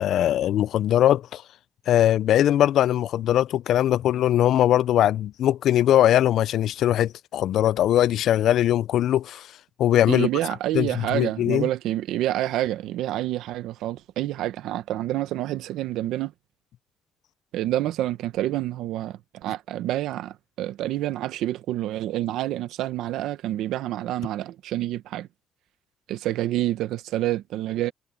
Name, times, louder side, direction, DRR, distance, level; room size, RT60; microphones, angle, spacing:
voice 1, 0.0-1.4 1.9-9.5 9.8-10.3 10.7-11.7, left 12 dB, 75° left, 0.4 m, -21 dB
voice 2, 10.1-16.3 17.5-25.3 26.1-27.9, right 14 dB, 90° right, 1.1 m, -28 dB
cardioid pair, 90°, 0 cm